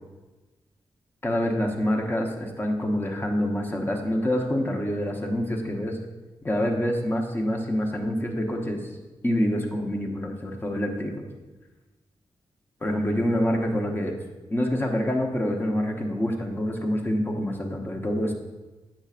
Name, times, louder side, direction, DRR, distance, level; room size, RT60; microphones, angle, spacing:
voice 1, 1.2-6.0 6.4-8.8 9.2-11.2 12.8-14.2 14.5-18.3, equal, 20° left, 1 dB, 1.0 m, -26 dB
8.7 x 6.6 x 2.5 m, 1.2 s
wide cardioid pair, 105°, 10 cm